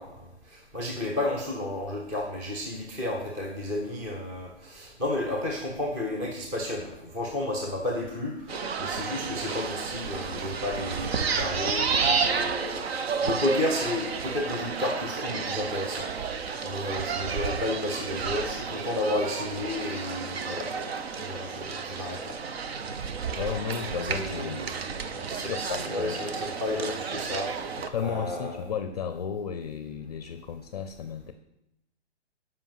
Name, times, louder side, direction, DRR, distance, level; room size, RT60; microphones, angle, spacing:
voice 1, 0.0-16.1 16.6-22.4 24.0-27.8 28.0-28.6, left 1 dB, 10° right, 0 dB, 0.6 m, -32 dB
sound 1, 8.5-27.9, right 5 dB, 60° right, 0.9 m, -31 dB
voice 2, 23.4-24.6 25.3-26.2 27.8-31.3, left 7 dB, 35° left, 9 dB, 0.5 m, -34 dB
8.1 x 5.4 x 7.4 m, 0.86 s
hypercardioid pair, 165°, 34 cm